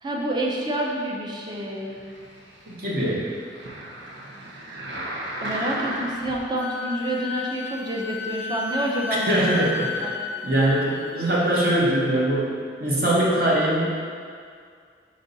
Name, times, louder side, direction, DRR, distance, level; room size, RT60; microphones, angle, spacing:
voice 1, 0.0-2.0 5.4-9.5 10.0-10.1, right 1 dB, 25° right, -2 dB, 0.6 m, -28 dB
sound 1, 1.8-6.4 7.0-7.1, right 1 dB, 75° right, 0.8 m, -35 dB
voice 2, 2.7-3.3 9.3-10.1 10.4-14.0, right 1 dB, 55° right, -6 dB, 1.3 m, -22 dB
Wind instrument woodwind instrument, 6.6-11.7, left 5 dB, 85° left, 0.5 m, -33 dB
5.2 x 5.1 x 4.0 m, 2.2 s
head